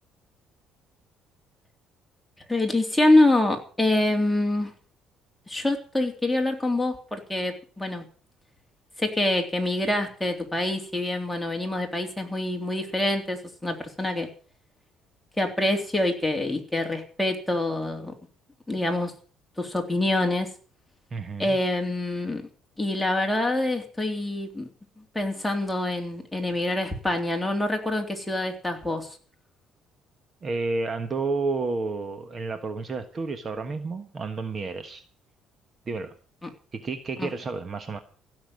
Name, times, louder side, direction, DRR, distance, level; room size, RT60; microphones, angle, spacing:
voice 1, 2.5-4.7 5.5-8.0 9.0-14.3 15.4-18.1 18.7-19.1 19.6-20.5 21.4-22.4 22.8-24.7 25.1-29.2 36.4-36.5 37.2-37.3, left 1 dB, 5° left, 2 dB, 3.3 m, -25 dB
voice 2, 21.1-21.6 30.4-35.0 35.9-36.1 36.7-38.0, right 3 dB, 35° right, 8 dB, 1.4 m, -30 dB
16.0 x 7.1 x 9.5 m, 0.42 s
cardioid pair, 120°, 0 cm